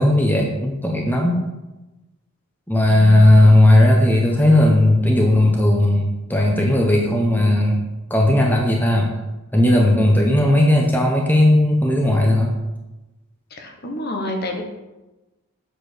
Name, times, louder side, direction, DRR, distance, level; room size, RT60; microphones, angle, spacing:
voice 1, 0.0-1.4 2.7-7.8 8.1-9.1 9.5-12.5, left 1 dB, 10° left, 0 dB, 0.8 m, -16 dB
voice 2, 2.9-3.5 13.5-14.6, left 1 dB, 45° left, 3 dB, 1.2 m, -29 dB
8.0 x 4.4 x 6.2 m, 1.0 s
head